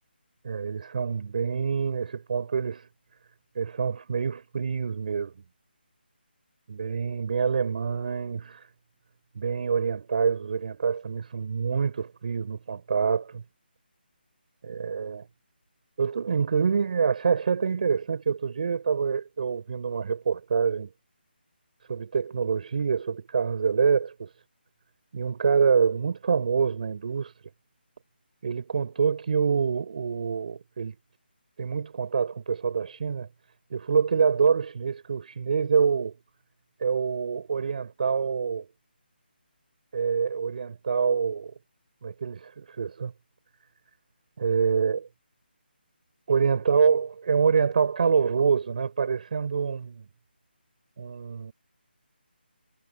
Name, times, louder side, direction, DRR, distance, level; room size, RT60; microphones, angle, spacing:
voice 1, 0.4-2.9 3.6-5.3 6.7-8.7 9.4-13.4 14.6-15.3 16.0-20.9 21.9-24.3 25.1-27.3 28.4-30.9 31.6-33.3 33.7-36.1 36.8-38.7 39.9-41.5 42.0-43.1 44.4-45.1 46.3-50.0 51.0-51.5, right 6 dB, 50° right, 5.3 m, -26 dB
figure-of-eight pair, 160°, 6 cm